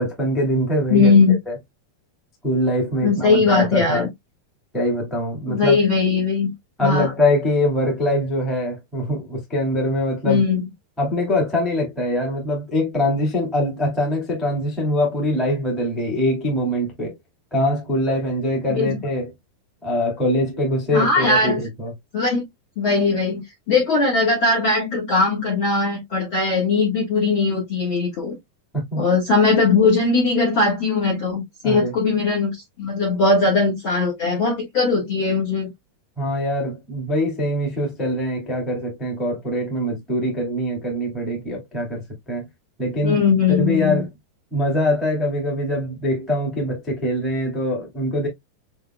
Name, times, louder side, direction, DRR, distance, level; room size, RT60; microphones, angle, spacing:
voice 1, 0.0-1.1 1.5-1.6 2.4-4.1 4.7-5.8 6.8-10.4 11.0-17.1 17.5-19.3 19.8-21.9 28.7-29.0 31.6-31.9 36.2-42.5 42.8-43.2 43.5-44.1 44.5-48.3, left 1 dB, ahead, 1.0 m, -23 dB
voice 2, 0.9-1.3 3.0-4.1 5.5-6.5 6.8-7.1 10.3-10.6 18.7-19.0 20.9-21.6 22.1-22.4 22.8-28.4 29.0-35.7 43.0-44.0, left 4 dB, 45° left, 1.7 m, -19 dB
7.2 x 2.9 x 2.3 m
omnidirectional pair, 4.5 m